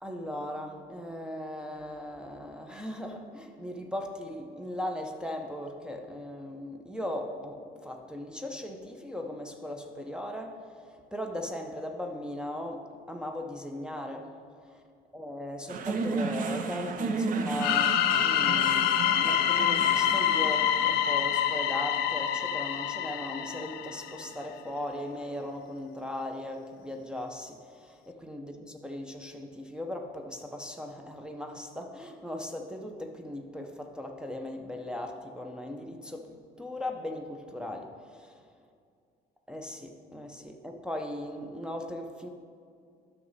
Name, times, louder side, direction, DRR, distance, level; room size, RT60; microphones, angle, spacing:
voice 1, 0.0-10.6 11.1-14.3 15.1-38.3 39.5-42.3, left 1 dB, 5° right, 1 dB, 0.6 m, -38 dB
sound 1, 15.7-24.1, right 4 dB, 55° right, 0.6 m, -34 dB
sound 2, 17.6-24.3, left 10 dB, 75° left, 0.4 m, -26 dB
9.3 x 5.9 x 4.0 m, 2.2 s
cardioid pair, 110°, 17 cm